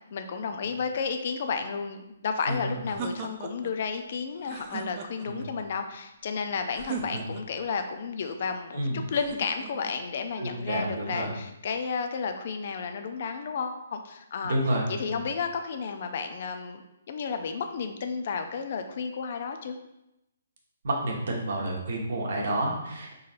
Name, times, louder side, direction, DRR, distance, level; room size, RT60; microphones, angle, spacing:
voice 1, 0.1-14.6 14.9-19.8, left 5 dB, 55° left, 7 dB, 0.4 m, -32 dB
sound 1, 2.4-3.8 4.4-5.5 6.7-7.7 9.1-10.0, right 6 dB, 35° right, 0.4 m, -39 dB
voice 2, 10.4-11.3 14.4-15.2 20.8-23.2, right 1 dB, 65° right, -1 dB, 1.1 m, -30 dB
4.1 x 3.9 x 2.5 m, 0.89 s
hypercardioid pair, 145°, 0 cm